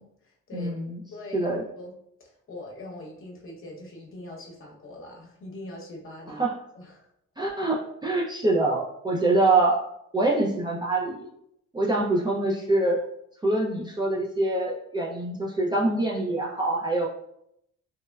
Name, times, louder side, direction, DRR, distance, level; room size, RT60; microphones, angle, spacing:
voice 1, 0.0-0.8 1.1-1.9 2.2-6.4 6.7-7.1, left 1 dB, 45° left, -1 dB, 0.8 m, -42 dB
voice 2, 0.5-1.0 1.3-1.6 6.4-6.5 7.4-9.8 10.1-11.3 11.7-13.0 13.4-17.1, right 2 dB, 15° right, -4 dB, 0.3 m, -25 dB
3.0 x 2.1 x 2.2 m, 0.76 s
cardioid pair, 90°, 30 cm